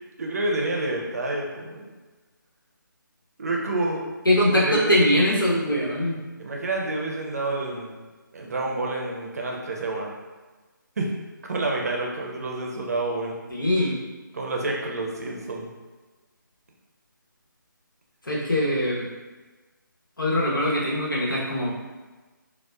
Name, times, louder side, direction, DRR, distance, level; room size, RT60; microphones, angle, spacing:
voice 1, 0.2-1.9 3.4-4.0 4.5-5.0 6.4-8.0 8.3-10.1 11.0-11.1 11.5-13.4 14.3-15.7, right 2 dB, 50° right, -1 dB, 0.6 m, -28 dB
voice 2, 4.2-6.2 13.5-14.0 18.2-19.1 20.2-21.7, left 1 dB, 75° left, -5 dB, 1.0 m, -22 dB
4.1 x 2.1 x 2.3 m, 1.3 s
figure-of-eight pair, 150°, 11 cm